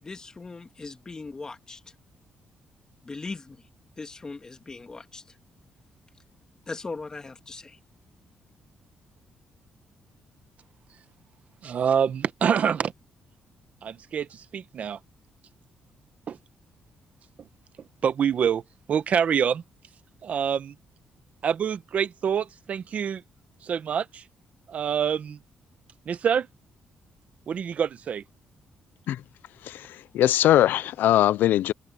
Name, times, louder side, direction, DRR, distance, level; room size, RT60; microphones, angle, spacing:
voice 1, 0.0-1.8 3.0-3.6 4.0-5.4 6.7-7.8, left 3 dB, 20° left, 1.9 m, -39 dB
voice 2, 11.6-12.9 13.8-15.0 16.3-16.4 18.0-18.6 18.9-19.6 20.2-20.7 21.4-23.2 23.6-24.2 24.7-25.4 26.1-26.5 27.5-28.2, right 7 dB, 50° right, 1.0 m, -26 dB
voice 3, 29.6-31.7, left 13 dB, 85° left, 0.4 m, -21 dB
open air
cardioid pair, 145°, 3 cm